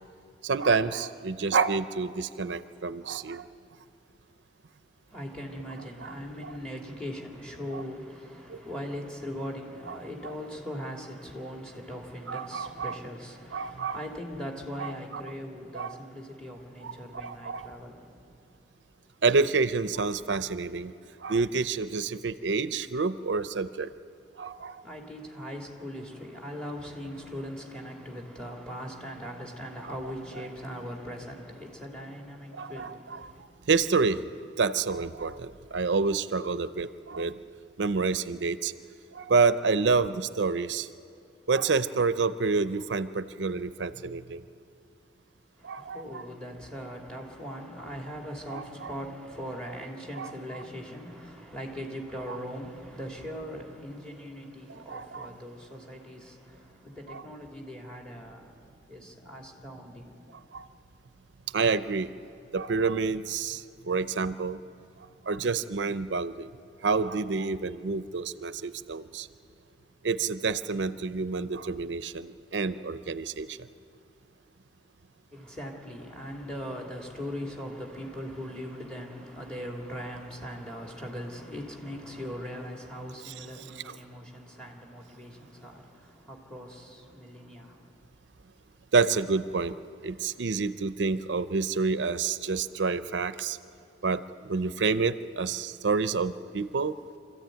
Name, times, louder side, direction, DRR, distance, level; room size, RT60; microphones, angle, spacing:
voice 1, 0.4-3.5 6.0-6.1 6.4-6.5 7.7-7.8 8.5-8.6 9.9-10.4 12.3-13.0 13.5-14.0 14.8-15.2 15.7-16.0 16.8-17.7 19.2-20.9 21.2-23.9 24.4-24.8 32.5-34.2 34.6-37.4 37.8-38.7 39.1-40.9 41.5-44.4 45.6-46.2 48.5-48.9 50.2-50.7 54.7-55.3 57.1-57.2 60.5-60.7 61.5-62.1 62.5-64.6 65.3-66.5 66.8-69.3 70.0-73.7 83.2-84.0 88.9-89.8 90.0-93.6 94.0-97.0, right 4 dB, 85° right, 0.6 m, -28 dB
voice 2, 5.1-18.2 24.8-33.4 45.6-58.6 58.9-60.2 75.3-87.9, equal, 5° left, 2.8 m, -40 dB
25.5 x 14.0 x 9.2 m
head